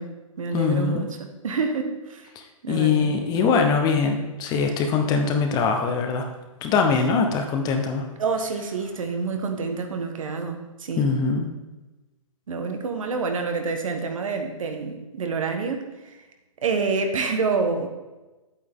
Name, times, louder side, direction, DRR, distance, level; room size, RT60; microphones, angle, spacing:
voice 1, 0.0-2.3 2.6-3.1 8.2-11.1 12.5-16.2 16.6-17.9, right 4 dB, 70° right, 5 dB, 1.4 m, -28 dB
voice 2, 0.5-1.1 2.7-6.3 6.6-8.1 11.0-11.5, left 5 dB, 20° left, 4 dB, 1.0 m, -22 dB
8.9 x 8.5 x 3.7 m, 1.1 s
hypercardioid pair, 135°, 18 cm